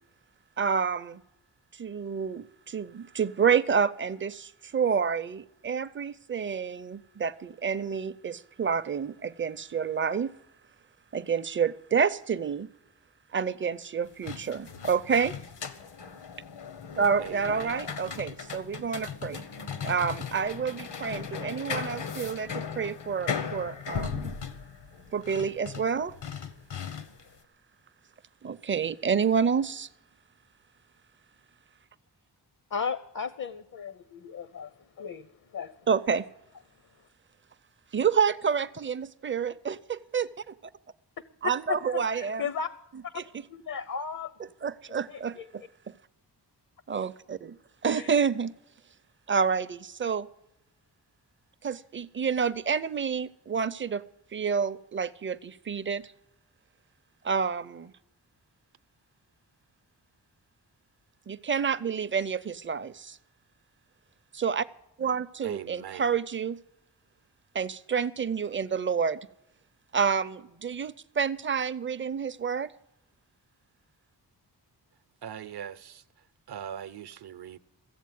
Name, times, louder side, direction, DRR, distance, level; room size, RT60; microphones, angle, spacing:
voice 1, 0.6-1.2 1.8-10.3 11.1-12.7 13.3-15.3 17.0-19.4 19.8-24.3 25.1-26.1 28.4-29.9 35.9-36.3 37.9-40.5 41.4-42.4 43.2-43.3 44.6-45.6 46.9-47.6 47.8-48.5 49.3-50.3 51.6-54.0 54.3-56.0 57.2-57.9 61.3-63.2 64.3-64.7 65.0-66.6 67.5-69.2 69.9-72.7, right 6 dB, 30° right, 0.5 m, -29 dB
sound 1, 14.1-27.3, left 6 dB, 80° left, 1.2 m, -37 dB
voice 2, 17.2-17.8 65.4-66.1 75.2-76.0 76.5-77.6, right 9 dB, 65° right, 0.7 m, -41 dB
voice 3, 32.7-34.7 35.0-35.7 41.7-42.7 43.5-44.3 45.1-45.5 47.9-48.1, left 6 dB, 50° left, 0.7 m, -35 dB
15.0 x 8.0 x 9.3 m
wide cardioid pair, 125°, 42 cm